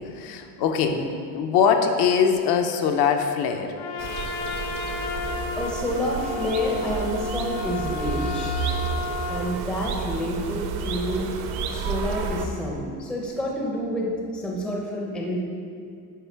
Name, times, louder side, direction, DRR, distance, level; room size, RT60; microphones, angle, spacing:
voice 1, 0.2-1.0 1.3-3.7, left 7 dB, 55° left, 5 dB, 0.6 m, -22 dB
Trumpet, 3.7-9.5, left 5 dB, 85° left, 0.9 m, -33 dB
sound 1, 4.0-12.5, right 5 dB, 55° right, 0.7 m, -31 dB
voice 2, 5.6-8.6 9.3-11.4 11.7-15.4, left 1 dB, ahead, -2 dB, 0.5 m, -28 dB
10.5 x 4.4 x 4.5 m, 2.3 s
cardioid pair, 165°, 47 cm